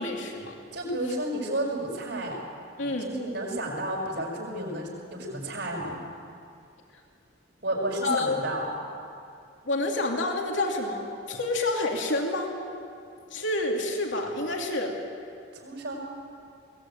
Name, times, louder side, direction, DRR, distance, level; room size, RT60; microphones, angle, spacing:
voice 1, 0.0-0.6 2.8-3.2 8.0-8.5 9.6-12.5 13.3-15.0, left 2 dB, 75° left, 1 dB, 2.8 m, -28 dB
voice 2, 0.7-2.4 2.8-6.0 7.6-8.7 15.5-16.0, right 1 dB, 60° right, -1 dB, 6.0 m, -31 dB
21.5 x 18.5 x 9.1 m, 2.5 s
head